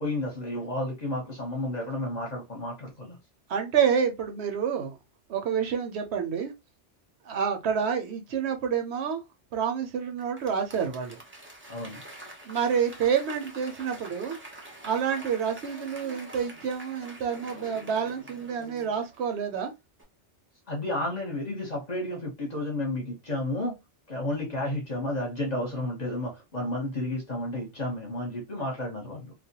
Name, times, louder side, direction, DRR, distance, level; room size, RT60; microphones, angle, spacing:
voice 1, 0.0-3.2 11.7-12.0 20.7-23.8 24.1-29.3, left 1 dB, 40° left, 0.8 m, -32 dB
voice 2, 3.5-5.0 5.3-6.5 7.2-9.2 9.5-11.2 12.4-14.4 14.8-19.7, right 7 dB, 70° right, 0.8 m, -28 dB
Applause / Crowd, 10.2-19.6 20.0-20.1, right 1 dB, 20° right, 0.3 m, -46 dB
2.3 x 2.1 x 2.7 m
omnidirectional pair, 1.2 m